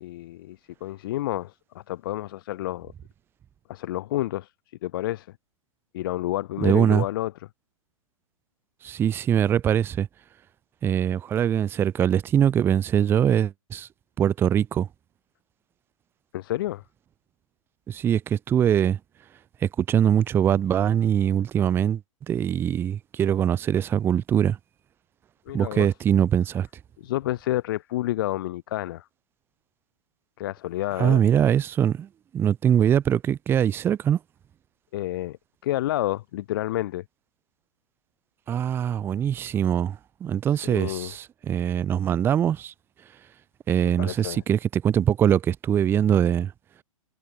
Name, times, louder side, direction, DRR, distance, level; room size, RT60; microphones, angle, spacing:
voice 1, 0.0-2.9 3.7-4.5 4.8-5.3 5.9-7.3 16.3-16.8 25.5-25.9 27.0-29.1 30.4-31.3 34.9-35.4 35.6-37.0 40.6-41.1 43.8-44.4, left 15 dB, 40° left, 0.7 m, -29 dB
voice 2, 6.6-7.0 8.8-10.1 10.8-13.9 14.2-14.9 17.9-19.0 19.6-22.0 22.3-24.6 25.5-26.7 31.0-34.2 38.5-42.7 43.7-46.5, right 9 dB, 10° right, 0.6 m, -22 dB
figure-of-eight pair, 115°, 18 cm